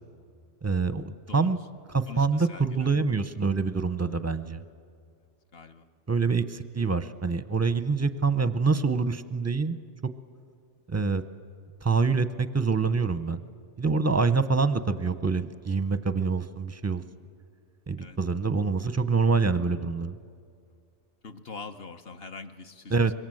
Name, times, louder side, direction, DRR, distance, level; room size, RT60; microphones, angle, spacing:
voice 1, 0.6-1.6 1.9-4.6 6.1-9.8 10.9-11.2 11.8-13.4 13.8-17.0 17.9-20.2 22.9-23.1, right 4 dB, 20° right, 12 dB, 0.5 m, -26 dB
voice 2, 2.1-3.1 5.5-5.9 18.0-18.2 21.2-22.9, left 4 dB, 60° left, 6 dB, 1.2 m, -43 dB
25.5 x 22.5 x 7.7 m, 2.2 s
omnidirectional pair, 1.2 m